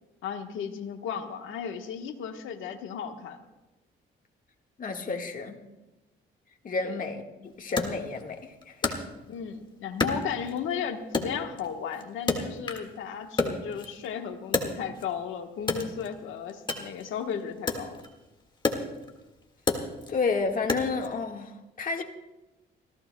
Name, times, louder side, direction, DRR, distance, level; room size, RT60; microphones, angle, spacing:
voice 1, 0.2-3.4 6.8-7.0 9.3-18.0, left 7 dB, 85° left, 4 dB, 1.3 m, -35 dB
voice 2, 4.8-5.6 6.6-8.9 20.1-22.0, left 4 dB, 45° left, 3 dB, 1.7 m, -31 dB
Wood, 7.8-9.5 10.0-10.8 11.1-13.0 13.2-15.2 15.6-21.1, left 3 dB, 25° left, 1.8 m, -31 dB
29.5 x 15.0 x 2.2 m, 1.1 s
cardioid pair, 90°, 20 cm